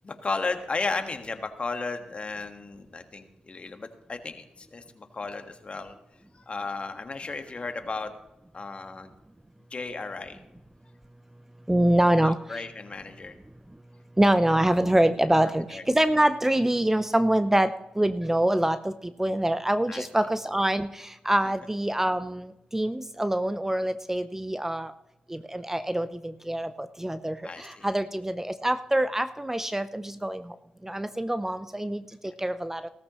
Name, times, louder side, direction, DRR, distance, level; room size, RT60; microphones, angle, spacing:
voice 1, 0.0-5.9 6.3-8.1 8.5-9.1 9.7-10.4 12.1-13.3 15.7-15.8 19.9-20.1 27.4-27.9, left 3 dB, 45° left, 7 dB, 1.6 m, -34 dB
voice 2, 11.7-12.6 14.2-18.9 19.2-24.9 25.3-30.4 30.8-32.9, right 1 dB, 15° right, 13 dB, 0.6 m, -25 dB
17.0 x 13.5 x 3.1 m, 0.92 s
supercardioid pair, 45°, 3 cm